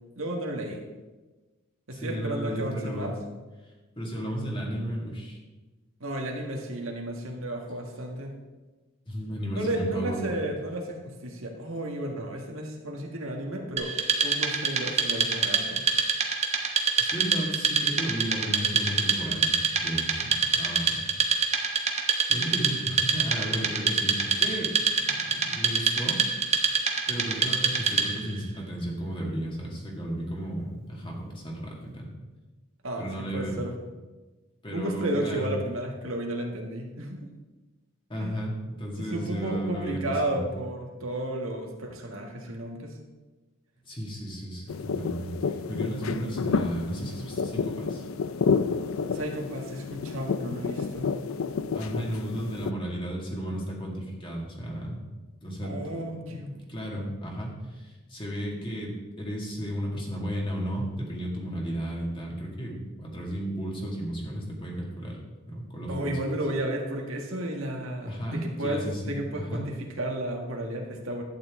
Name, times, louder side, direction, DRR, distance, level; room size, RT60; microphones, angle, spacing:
voice 1, 0.2-0.8 1.9-3.2 6.0-8.4 9.5-13.9 14.2-15.8 32.8-33.8 34.7-37.3 38.2-38.4 39.0-42.9 49.1-51.2 55.6-56.6 57.0-57.1 65.9-68.8 69.1-71.2, right 1 dB, 75° right, 1 dB, 1.5 m, -33 dB
voice 2, 1.9-3.2 4.0-5.4 9.1-10.5 17.0-19.6 19.8-21.1 22.3-26.2 26.5-26.8 27.1-32.1 33.0-33.6 34.6-35.5 38.1-40.5 43.8-48.1 51.7-55.0 55.4-56.4 56.7-65.2 65.5-66.4 68.1-69.7, right 1 dB, 25° left, -2 dB, 2.1 m, -34 dB
Wood, 13.8-28.3, right 5 dB, 30° right, 1.0 m, -26 dB
sound 1, 44.7-52.7, left 5 dB, 80° left, 0.5 m, -30 dB
11.5 x 9.1 x 3.6 m, 1.2 s
head